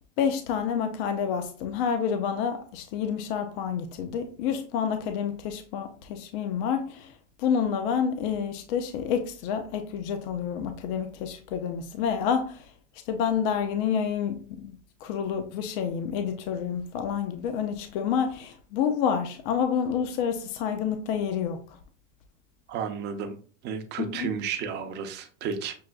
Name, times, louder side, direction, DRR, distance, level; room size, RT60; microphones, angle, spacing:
voice 1, 0.2-7.1 7.4-12.7 13.1-21.8 24.0-24.3, left 7 dB, 50° left, 0.5 m, -28 dB
voice 2, 22.7-23.4 23.6-25.7, right 7 dB, 30° right, 0.6 m, -32 dB
6.1 x 2.4 x 2.3 m
supercardioid pair, 140°, 36 cm